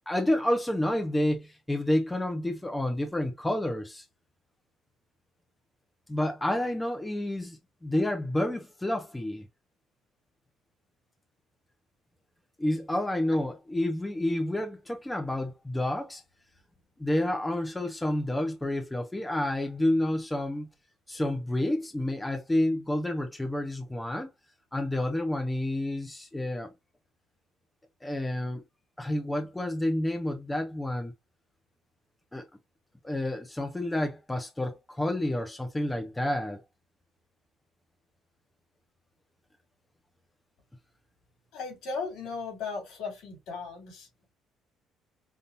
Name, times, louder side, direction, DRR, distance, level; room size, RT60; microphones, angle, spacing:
voice 1, 0.1-4.0 6.1-9.5 12.6-16.2 17.0-20.7 21.1-24.3 24.7-26.7 28.0-28.6 29.0-31.1 32.3-32.4 33.0-36.6, left 1 dB, 10° left, 0.8 m, -29 dB
voice 2, 41.5-44.3, left 4 dB, 80° left, 3.1 m, -37 dB
5.3 x 2.6 x 2.8 m
cardioid pair, 120°, 0 cm